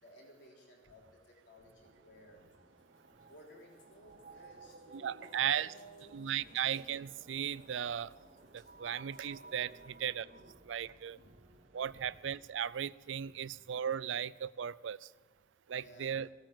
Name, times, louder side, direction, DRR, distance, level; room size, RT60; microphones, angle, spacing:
voice 1, 0.0-2.5 3.3-6.5 11.1-11.3 11.9-12.1 13.3-13.4 15.7-16.1, equal, 60° left, -2 dB, 3.8 m, -58 dB
sound 1, 0.9-10.5, left 2 dB, 85° left, 3.1 m, -69 dB
sound 2, 1.8-10.5, right 3 dB, 50° right, 0.8 m, -58 dB
voice 2, 4.9-5.7 6.1-8.1 8.5-10.3 10.7-11.2 11.7-15.1 15.7-16.3, right 9 dB, 75° right, 20 dB, 0.4 m, -36 dB
sound 3, 6.0-12.8, right 1 dB, 35° right, 1.5 m, -63 dB
17.5 x 9.0 x 7.6 m, 1.4 s
head